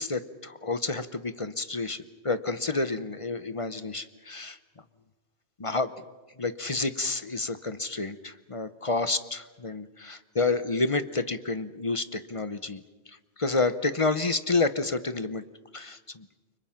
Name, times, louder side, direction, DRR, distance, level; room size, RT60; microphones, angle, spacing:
voice 1, 0.0-4.6 5.6-5.9 6.4-15.4 15.7-16.3, left 3 dB, 30° left, 12 dB, 0.8 m, -29 dB
29.5 x 25.0 x 5.8 m, 1.2 s
omnidirectional pair, 1.2 m